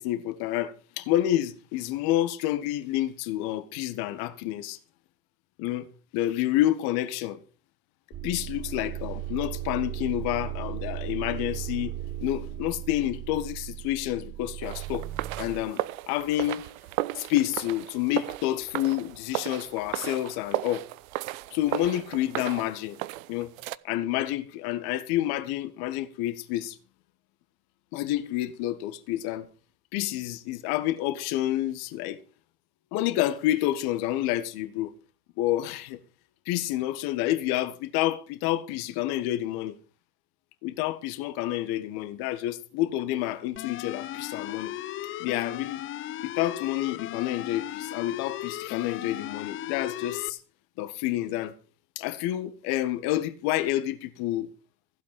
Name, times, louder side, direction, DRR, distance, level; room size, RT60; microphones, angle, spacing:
voice 1, 0.0-4.8 5.6-5.9 6.1-7.4 8.2-11.9 12.2-15.1 15.4-16.7 17.1-20.8 21.5-23.0 23.3-23.5 23.8-26.8 27.9-29.5 29.9-32.2 32.9-34.9 35.4-36.0 36.4-39.8 40.6-44.7 45.2-45.8 46.2-50.4 50.8-51.5 51.9-54.5, left 14 dB, 55° left, 1.7 m, -29 dB
sound 1, 8.1-15.6, right 12 dB, 25° right, 1.2 m, -36 dB
sound 2, 14.6-23.8, right 17 dB, 65° right, 0.8 m, -35 dB
sound 3, 43.6-50.3, left 13 dB, 30° left, 0.5 m, -36 dB
15.5 x 8.4 x 5.8 m
hypercardioid pair, 75°, 45 cm